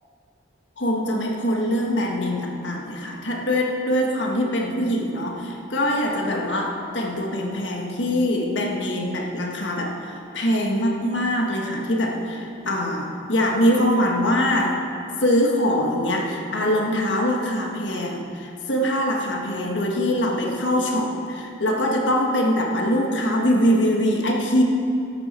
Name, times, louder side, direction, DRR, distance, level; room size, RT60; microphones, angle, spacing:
voice 1, 0.8-14.9 15.2-24.6, equal, 75° left, 1 dB, 1.6 m, -23 dB
13.5 x 11.5 x 4.4 m, 2.6 s
head